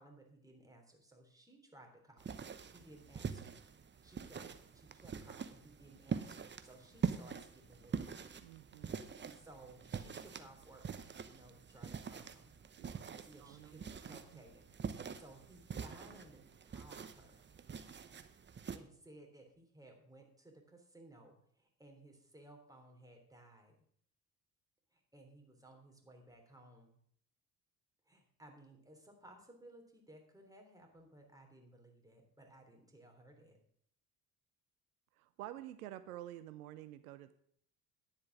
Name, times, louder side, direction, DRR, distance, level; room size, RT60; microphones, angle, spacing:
voice 1, 0.0-2.4 2.7-3.5 4.0-4.5 4.7-8.2 8.6-8.8 9.3-10.8 11.2-12.5 13.2-17.4 18.7-23.7 24.9-27.0 28.0-33.6, right 1 dB, 10° right, 2 dB, 3.3 m, -59 dB
sound 1, 2.2-18.8, right 6 dB, 25° right, 0.9 m, -44 dB
voice 2, 8.4-9.0 12.7-13.8 14.1-14.4 35.1-37.3, right 13 dB, 75° right, 13 dB, 0.6 m, -50 dB
10.0 x 7.3 x 6.1 m, 0.64 s
hypercardioid pair, 55°, 44 cm